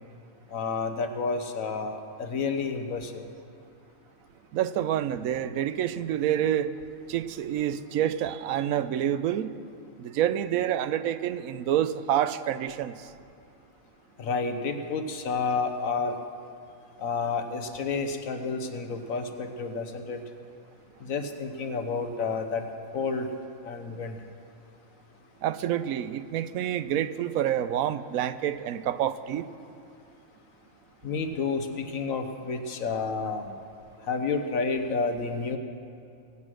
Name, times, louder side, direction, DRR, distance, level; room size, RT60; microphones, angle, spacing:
voice 1, 0.5-3.2 14.2-16.2 17.0-20.2 21.0-22.7 22.9-23.3 23.6-24.2 31.0-33.5 34.0-35.6, left 4 dB, 75° left, 7 dB, 1.4 m, -30 dB
voice 2, 4.5-6.7 7.1-9.5 10.0-13.1 25.4-29.5, right 10 dB, 85° right, 13 dB, 1.0 m, -28 dB
22.0 x 8.3 x 6.2 m, 2.4 s
omnidirectional pair, 1.5 m